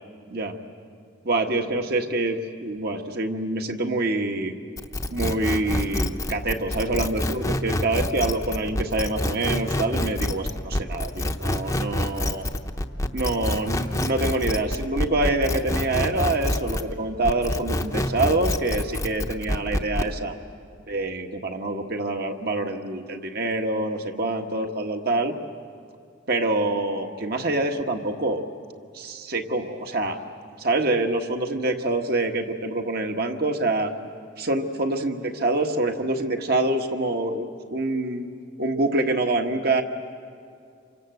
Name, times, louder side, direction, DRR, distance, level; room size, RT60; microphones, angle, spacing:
voice 1, 1.2-4.5 5.1-12.4 13.1-20.4 20.9-25.3 26.3-28.4 28.9-30.2 30.6-33.9 34.4-38.3 38.6-39.8, right 2 dB, 50° right, 4 dB, 1.6 m, -26 dB
sound 1, 4.8-16.9 17.2-20.1, left 1 dB, 15° left, 0.8 m, -27 dB
28.5 x 25.0 x 7.9 m, 2.4 s
head